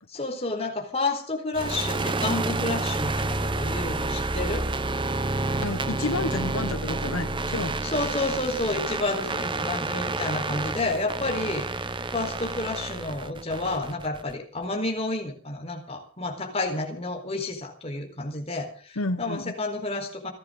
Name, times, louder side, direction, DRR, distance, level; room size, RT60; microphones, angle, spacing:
voice 1, 0.1-4.7 7.8-11.7 12.1-20.3, left 2 dB, 30° left, 3 dB, 4.3 m, -30 dB
sound 1, 1.5-14.3, right 2 dB, 20° right, 0.8 m, -29 dB
voice 2, 5.6-7.7 19.0-19.5, left 2 dB, 75° left, 10 dB, 1.2 m, -30 dB
29.5 x 11.0 x 3.9 m, 0.41 s
head